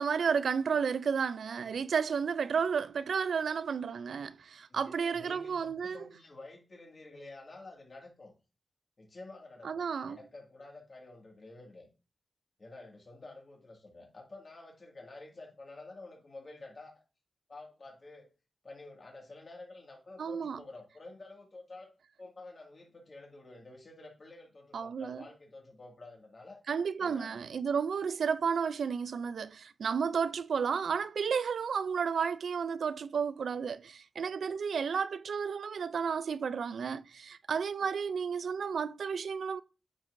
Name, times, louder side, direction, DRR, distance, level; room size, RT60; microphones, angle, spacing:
voice 1, 0.0-6.0 9.6-10.2 20.2-20.6 24.7-25.2 26.7-39.6, right 6 dB, 90° right, 0.3 m, -32 dB
voice 2, 4.7-8.3 9.0-11.9 12.6-17.0 17.5-18.3 18.6-21.9 22.2-26.6 27.0-27.4 34.2-34.3 37.8-37.9, left 2 dB, 40° left, 2.0 m, -50 dB
8.8 x 5.1 x 2.5 m
wide cardioid pair, 175°, 0 cm